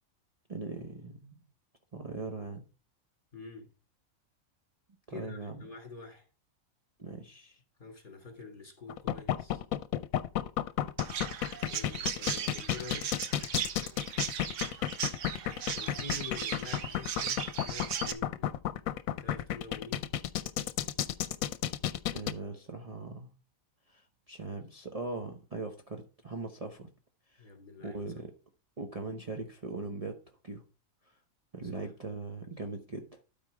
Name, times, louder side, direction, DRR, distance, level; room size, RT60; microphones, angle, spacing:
voice 1, 0.5-1.4 1.9-2.6 5.1-5.6 7.0-7.6 22.1-23.3 23.9-26.9 27.3-27.5 27.8-28.3 28.8-30.1 30.4-30.6 31.1-31.2 31.5-33.2, right 3 dB, 30° right, 0.9 m, -40 dB
voice 2, 3.3-3.7 5.1-6.3 7.8-9.6 11.7-13.1 15.7-18.5 19.2-20.1 27.4-28.0 31.6-31.9, left 3 dB, 40° left, 2.6 m, -46 dB
sound 1, 8.9-22.3, left 11 dB, 85° left, 1.0 m, -32 dB
Chirp tweet, 11.0-18.1, right 8 dB, 65° right, 1.1 m, -37 dB
12.5 x 4.2 x 4.7 m
omnidirectional pair, 1.4 m